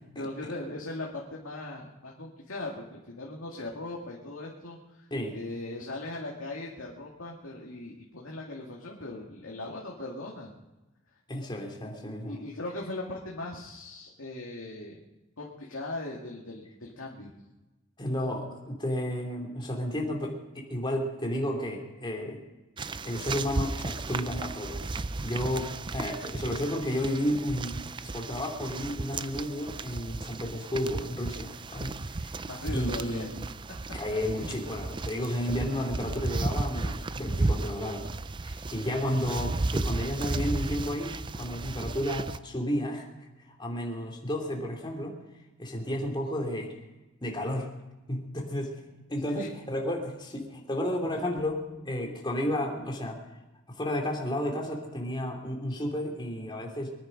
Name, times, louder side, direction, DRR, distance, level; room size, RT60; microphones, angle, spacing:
voice 1, 0.2-5.1 5.3-10.5 12.3-15.0 15.4-17.3 32.5-33.3 49.4-49.5, left 2 dB, 90° left, -2 dB, 2.3 m, -39 dB
voice 2, 11.3-12.4 18.0-22.4 23.0-24.8 25.2-27.8 28.0-32.3 32.7-33.3 33.9-38.1 38.4-45.2 45.6-46.7 47.2-47.7 48.1-48.8 49.1-53.2 53.7-56.9, left 1 dB, 25° left, 0 dB, 2.8 m, -32 dB
sound 1, 22.8-42.4, right 3 dB, 25° right, 0.4 m, -34 dB
23.5 x 10.0 x 5.2 m, 1.1 s
head